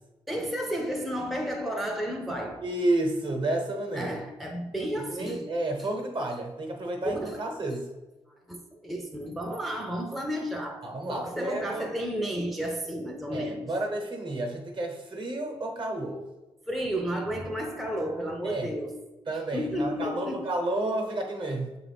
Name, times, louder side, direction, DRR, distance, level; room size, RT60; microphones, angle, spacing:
voice 1, 0.3-2.6 3.9-5.5 5.8-5.9 7.0-7.5 8.5-13.7 16.7-19.0 19.3-20.6, equal, ahead, 0.4 m, -32 dB
voice 2, 2.6-4.2 5.1-7.9 10.8-11.9 13.3-16.2 18.4-18.7 19.3-21.8, right 1 dB, 45° right, 0.8 m, -31 dB
6.4 x 2.4 x 3.3 m
cardioid pair, 105°, 11 cm